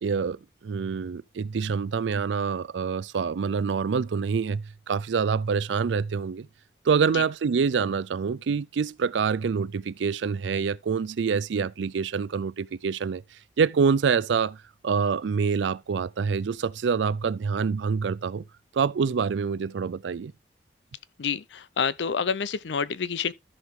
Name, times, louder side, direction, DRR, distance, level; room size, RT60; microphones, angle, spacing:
voice 1, 0.0-6.5 6.8-13.2 13.6-14.6 14.8-18.4 18.7-20.3, right 5 dB, 90° right, 0.4 m, -26 dB
voice 2, 21.2-23.3, left 6 dB, 80° left, 0.6 m, -28 dB
13.5 x 4.8 x 3.6 m
head